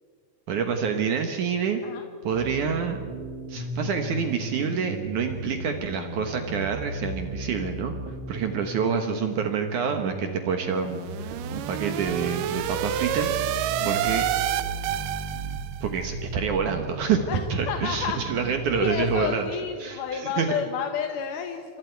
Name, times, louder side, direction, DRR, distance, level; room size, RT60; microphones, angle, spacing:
voice 1, 0.5-1.8 2.2-3.0 3.5-7.9 8.3-13.4 13.8-14.3 15.8-17.2 17.5-19.5 19.8-20.5, right 6 dB, 65° right, 5 dB, 2.3 m, -27 dB
sound 1, 2.3-19.3, right 1 dB, 35° right, 2.4 m, -36 dB
sound 2, 10.8-15.8, right 13 dB, 90° right, 1.8 m, -29 dB
voice 2, 17.7-18.2 18.7-21.8, left 7 dB, 65° left, 4 dB, 2.3 m, -30 dB
28.0 x 26.5 x 4.7 m, 2.1 s
omnidirectional pair, 4.6 m